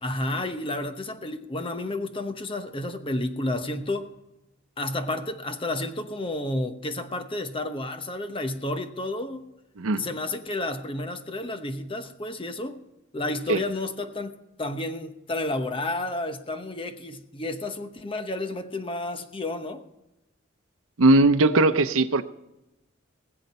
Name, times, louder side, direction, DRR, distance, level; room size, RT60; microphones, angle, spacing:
voice 1, 0.0-4.1 4.8-9.5 10.0-12.8 13.1-19.8, left 2 dB, 25° left, 1.0 m, -31 dB
voice 2, 21.0-22.2, right 2 dB, 85° right, 0.7 m, -19 dB
20.0 x 7.9 x 5.4 m
head